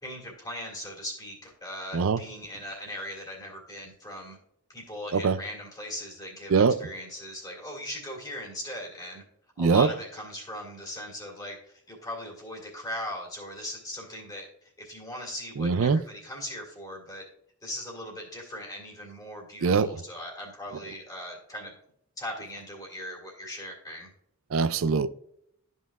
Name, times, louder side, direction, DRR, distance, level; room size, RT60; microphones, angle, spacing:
voice 1, 0.0-4.4 4.7-9.2 9.6-11.6 11.9-14.5 14.8-17.3 17.6-21.7 22.2-24.1, left 1 dB, 15° left, 2.1 m, -39 dB
voice 2, 9.6-9.9 15.6-16.0 19.6-20.0 24.5-25.1, right 5 dB, 60° right, 0.4 m, -22 dB
12.5 x 5.6 x 2.4 m
head